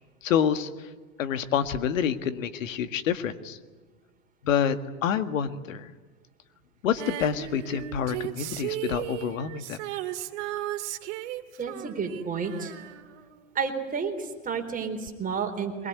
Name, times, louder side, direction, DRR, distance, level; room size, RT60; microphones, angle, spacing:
voice 1, 0.2-0.7 1.2-3.6 4.4-5.9 6.8-9.8, left 8 dB, 75° left, 10 dB, 1.9 m, -27 dB
Female singing, 7.0-13.9 15.1-15.2, right 13 dB, 60° right, 2.0 m, -36 dB
voice 2, 11.6-12.7 13.5-15.9, right 5 dB, 20° right, 5 dB, 4.0 m, -31 dB
23.5 x 21.0 x 9.5 m, 1.3 s
hypercardioid pair, 115°, 40 cm